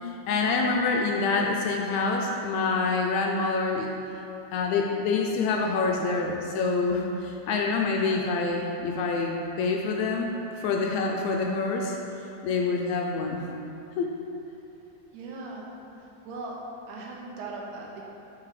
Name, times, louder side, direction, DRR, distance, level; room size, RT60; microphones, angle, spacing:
voice 1, 0.0-3.9 4.5-12.0 12.4-13.5 14.0-14.1, left 4 dB, 80° left, 1 dB, 1.7 m, -26 dB
voice 2, 15.1-15.7 16.2-16.6 16.9-18.0, right 3 dB, 85° right, -2 dB, 2.2 m, -38 dB
8.5 x 4.3 x 3.2 m, 2.9 s
omnidirectional pair, 3.5 m